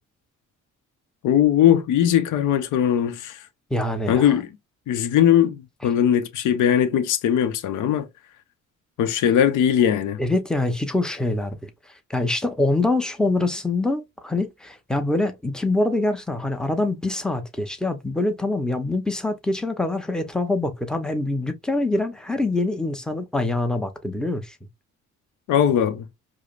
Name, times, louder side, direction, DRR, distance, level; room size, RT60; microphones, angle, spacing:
voice 1, 1.2-3.5 4.1-4.5 4.9-8.1 9.0-10.2 25.5-26.1, left 10 dB, 80° left, 0.6 m, -20 dB
voice 2, 3.7-4.3 10.2-11.6 12.1-24.6, left 2 dB, ahead, 0.7 m, -24 dB
4.8 x 2.0 x 2.4 m
cardioid pair, 90°, 30 cm